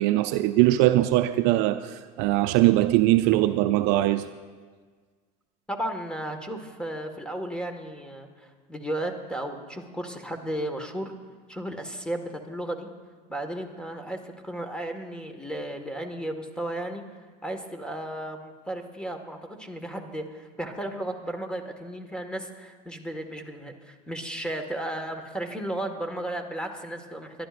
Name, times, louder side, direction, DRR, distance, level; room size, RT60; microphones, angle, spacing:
voice 1, 0.0-4.3, right 16 dB, 65° right, 0.5 m, -21 dB
voice 2, 5.7-11.1 11.5-12.9 13.3-17.0 17.4-27.5, right 1 dB, 5° left, 1.7 m, -34 dB
25.5 x 12.0 x 2.6 m
hypercardioid pair, 80°, 20 cm